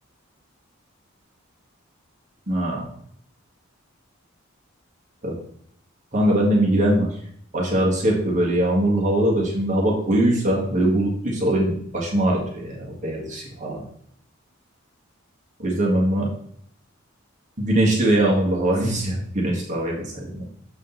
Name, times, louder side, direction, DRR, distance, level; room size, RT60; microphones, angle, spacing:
voice 1, 2.5-2.9 5.2-5.3 6.1-7.1 7.5-13.8 15.6-16.3 17.6-20.4, right 1 dB, 35° right, -3 dB, 1.7 m, -21 dB
7.1 x 5.1 x 3.9 m, 0.64 s
head